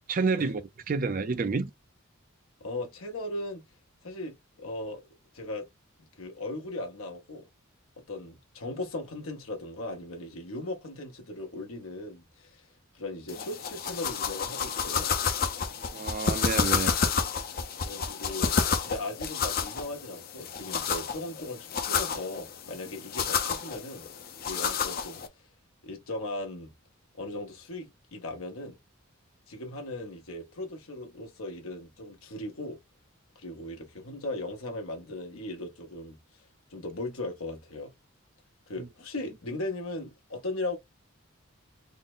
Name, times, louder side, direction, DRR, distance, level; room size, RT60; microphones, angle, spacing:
voice 1, 0.1-0.6 0.9-1.7 15.9-17.0 38.8-38.9, right 4 dB, 40° right, 0.4 m, -29 dB
voice 2, 2.6-3.6 4.0-5.0 5.3-5.7 6.2-7.5 8.1-12.7 12.9-15.1 17.8-18.6 18.8-24.1 24.4-25.2 25.8-26.7 27.1-28.8 29.5-32.8 33.3-36.2 36.7-37.9 38.7-40.8, left 2 dB, 85° left, 1.0 m, -38 dB
sound 1, 13.3-25.3, left 6 dB, 45° left, 0.5 m, -30 dB
3.7 x 2.1 x 3.7 m
head